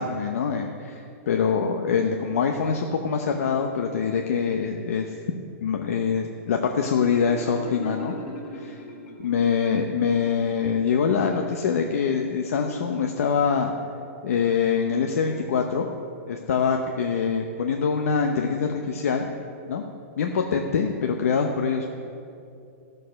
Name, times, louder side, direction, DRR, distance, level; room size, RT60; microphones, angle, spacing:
voice 1, 0.0-5.1 5.6-8.1 8.5-8.8 9.2-13.7 14.2-15.9 16.3-19.3 19.7-19.8 20.2-21.9, left 6 dB, 70° left, 3 dB, 0.8 m, -24 dB
Marimba xylophone, 7.0-9.7, equal, 30° left, 2.1 m, -39 dB
14.0 x 6.6 x 6.4 m, 2.6 s
supercardioid pair, 180°, 8 cm